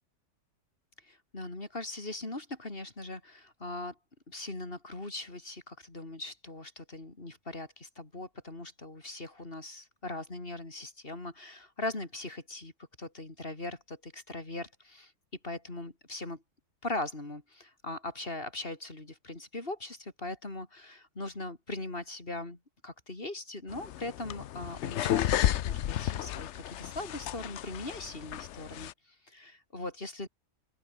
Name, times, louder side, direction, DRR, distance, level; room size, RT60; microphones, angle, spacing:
voice 1, 1.0-4.0 4.3-12.7 13.0-15.1 15.4-16.4 16.8-30.3, left 2 dB, 30° left, 3.8 m, -40 dB
sound 1, 23.7-28.9, left 12 dB, 65° left, 0.7 m, -32 dB
open air
omnidirectional pair, 1.8 m